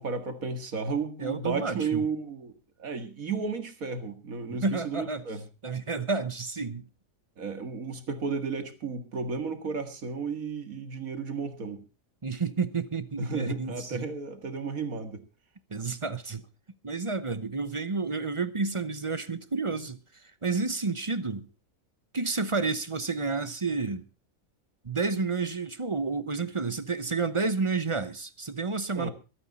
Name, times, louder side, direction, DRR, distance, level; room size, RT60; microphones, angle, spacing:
voice 1, 0.0-2.5 2.8-5.4 7.4-11.8 13.2-15.2 28.9-29.1, right 4 dB, 85° right, 2.3 m, -33 dB
voice 2, 1.2-2.0 4.5-5.2 5.6-6.9 12.2-14.1 15.7-16.4 16.8-21.5 22.1-24.1 24.8-29.1, right 4 dB, 30° right, 0.7 m, -30 dB
24.0 x 9.0 x 4.1 m
omnidirectional pair, 1.4 m